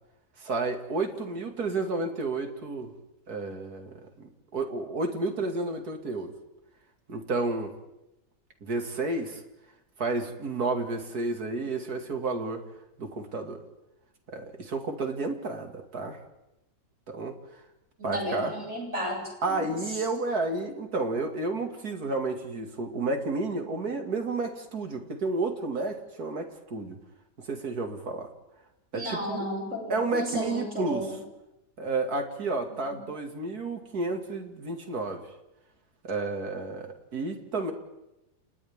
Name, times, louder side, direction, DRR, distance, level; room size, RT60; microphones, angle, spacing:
voice 1, 0.4-2.9 3.3-6.3 7.1-7.7 8.6-9.4 10.0-12.6 13.0-13.6 14.3-16.2 17.1-17.3 18.0-18.5 19.4-27.0 27.4-28.3 28.9-29.4 29.9-31.2 31.8-35.3 36.0-37.7, right 3 dB, 65° right, 4 dB, 2.7 m, -31 dB
voice 2, 18.0-19.8 28.9-31.2 32.9-33.0, equal, 50° right, -2 dB, 7.8 m, -33 dB
30.0 x 29.0 x 3.7 m, 0.92 s
omnidirectional pair, 1.7 m